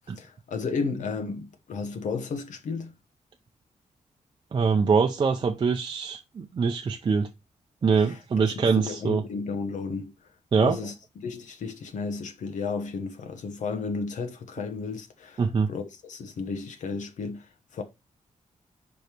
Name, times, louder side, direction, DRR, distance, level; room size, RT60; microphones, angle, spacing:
voice 1, 0.1-2.9 8.0-17.8, left 4 dB, 70° left, 1.1 m, -33 dB
voice 2, 4.5-7.3 7.8-9.2 10.5-10.8 15.4-15.7, right 5 dB, 35° right, 0.6 m, -23 dB
5.4 x 5.1 x 4.5 m
wide cardioid pair, 170°, 13 cm